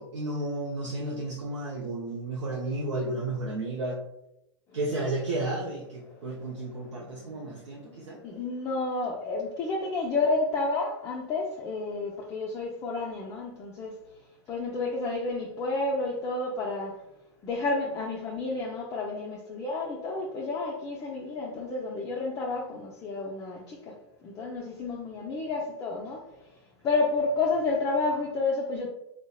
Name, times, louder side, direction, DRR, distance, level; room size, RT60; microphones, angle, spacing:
voice 1, 0.0-4.0 4.7-8.2, right 2 dB, 85° right, -1 dB, 0.4 m, -32 dB
voice 2, 6.6-14.0 14.5-17.0 17.4-23.9 24.2-26.5 26.8-28.9, left 3 dB, 25° left, -3 dB, 0.4 m, -31 dB
2.7 x 2.0 x 2.2 m, 0.84 s
hypercardioid pair, 105°, 15 cm